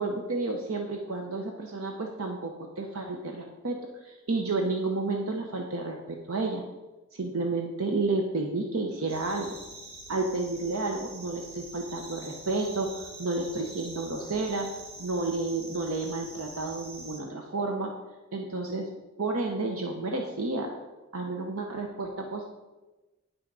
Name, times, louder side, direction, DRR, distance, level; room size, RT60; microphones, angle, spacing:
voice 1, 0.0-3.8 4.0-6.6 7.1-9.5 10.1-14.7 15.0-17.9 18.3-18.9 19.2-20.7 21.1-22.4, right 3 dB, 80° right, 2 dB, 0.9 m, -31 dB
sound 1, 9.1-17.2, right 2 dB, 30° right, 2.3 m, -45 dB
9.0 x 6.2 x 4.8 m, 1.1 s
head